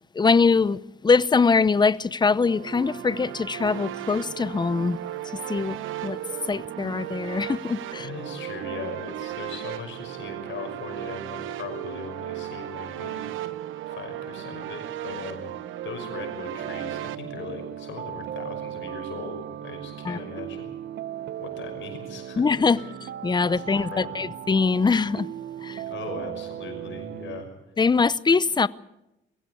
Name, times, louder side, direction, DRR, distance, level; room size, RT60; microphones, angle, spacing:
voice 1, 0.1-5.0 5.5-6.2 6.5-8.1 20.0-20.2 22.4-25.3 25.6-25.8 27.8-28.7, left 4 dB, 20° left, 0.7 m, -23 dB
sound 1, 2.4-17.2, right 12 dB, 85° right, 1.1 m, -36 dB
voice 2, 8.0-13.6 13.9-15.5 15.8-20.7 21.4-22.9 23.5-24.3 25.8-27.5, left 4 dB, 70° left, 6.0 m, -39 dB
sound 2, 16.6-27.4, right 11 dB, 60° right, 0.7 m, -37 dB
22.0 x 16.0 x 8.5 m
cardioid pair, 90°, 20 cm